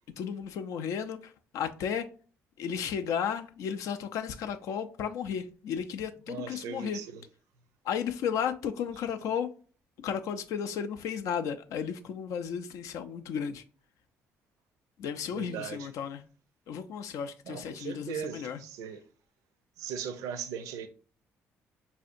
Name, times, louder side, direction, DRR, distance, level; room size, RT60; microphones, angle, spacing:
voice 1, 0.2-2.1 2.6-7.0 7.8-9.5 10.0-13.6 15.0-16.2 16.7-18.6, left 7 dB, 75° left, 0.4 m, -34 dB
voice 2, 6.3-7.2 15.3-15.9 17.4-19.0 19.8-20.9, right 7 dB, 85° right, 0.5 m, -38 dB
4.2 x 2.7 x 2.5 m
cardioid pair, 80°, 6 cm